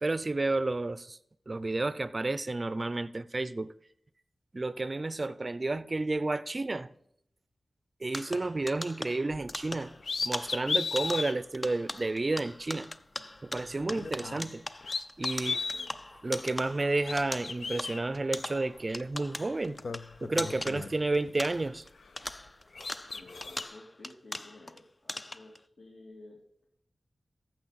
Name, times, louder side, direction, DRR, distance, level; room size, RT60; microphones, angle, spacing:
voice 1, 0.0-1.2 1.5-3.7 4.5-6.9 8.0-9.9 10.2-12.9 13.4-14.6 15.2-15.6 16.2-19.8 20.2-21.8, right 2 dB, 40° right, 0.5 m, -31 dB
sound 1, 8.1-21.9 22.2-24.8 25.1-25.6, left 1 dB, 25° left, 0.5 m, -41 dB
sound 2, 9.3-9.5 10.0-11.3 12.0-12.1 13.8-14.5 14.8-15.9 16.8-18.0 19.1-19.2 19.6-21.3 21.7-22.5 22.7-23.6, left 4 dB, 75° left, 0.6 m, -35 dB
voice 2, 15.4-16.0 23.1-26.6, left 2 dB, 60° left, 2.3 m, -53 dB
14.5 x 6.8 x 4.1 m
wide cardioid pair, 70°, 0 cm